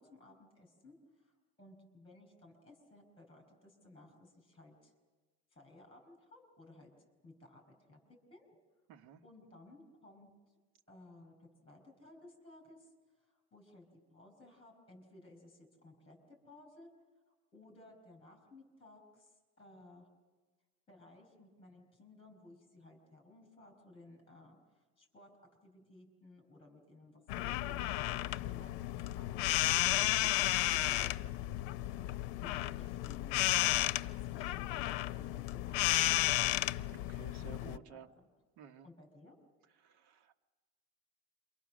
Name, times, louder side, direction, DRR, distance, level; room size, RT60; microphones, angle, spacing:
voice 1, 0.0-4.9 5.5-6.9 7.2-8.5 9.2-10.3 10.9-12.9 13.2-16.9 17.5-20.1 20.9-31.2 32.4-33.5 34.2-36.4 37.6-38.2 38.8-39.4, left 2 dB, 15° left, 5 dB, 4.9 m, -58 dB
voice 2, 8.9-9.2 36.9-38.1 38.6-38.9 39.8-40.4, right 7 dB, 90° right, 5 dB, 1.3 m, -54 dB
sound 1, 27.3-37.8, left 16 dB, 80° left, 0.7 m, -33 dB
28.0 x 24.0 x 6.3 m, 1.3 s
cardioid pair, 175°, 36 cm